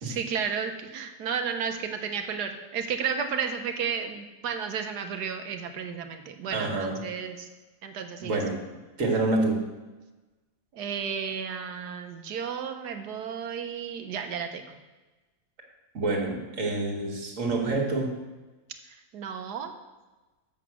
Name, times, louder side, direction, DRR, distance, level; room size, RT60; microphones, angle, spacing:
voice 1, 0.0-7.5 7.8-8.4 10.7-14.6 19.1-19.7, right 7 dB, 85° right, 6 dB, 1.5 m, -33 dB
voice 2, 6.5-7.0 8.2-8.6 9.0-9.6 15.9-18.1, right 2 dB, 55° right, 0 dB, 2.2 m, -27 dB
7.9 x 7.1 x 6.2 m, 1.2 s
omnidirectional pair, 1.7 m